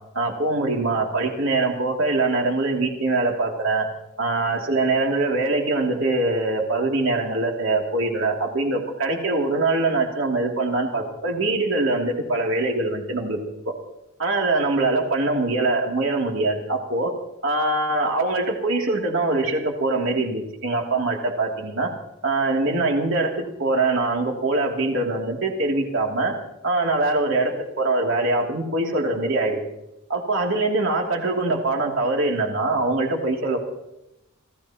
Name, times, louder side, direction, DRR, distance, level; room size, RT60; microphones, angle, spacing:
voice 1, 0.1-3.9 4.2-13.4 14.2-17.1 17.4-21.9 22.2-26.3 26.6-29.6 30.1-33.6, right 2 dB, 65° right, 1 dB, 2.8 m, -23 dB
27.5 x 17.0 x 3.0 m, 0.90 s
head